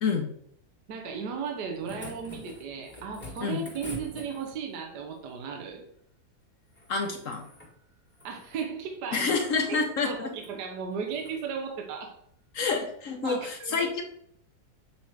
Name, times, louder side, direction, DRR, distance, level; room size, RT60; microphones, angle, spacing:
voice 1, 0.9-5.8 8.2-12.2 13.2-13.9, right 6 dB, 65° right, 2 dB, 1.3 m, -36 dB
sound 1, 1.5-4.8 6.7-7.7 8.1-8.7 9.2-9.6 10.3-10.5 11.1-11.4 12.7-12.8, left 1 dB, 5° left, 1.5 m, -46 dB
voice 2, 6.9-7.4 9.1-10.3 12.5-14.0, left 4 dB, 65° left, 4 dB, 0.8 m, -28 dB
7.1 x 3.0 x 4.5 m, 0.68 s
omnidirectional pair, 2.0 m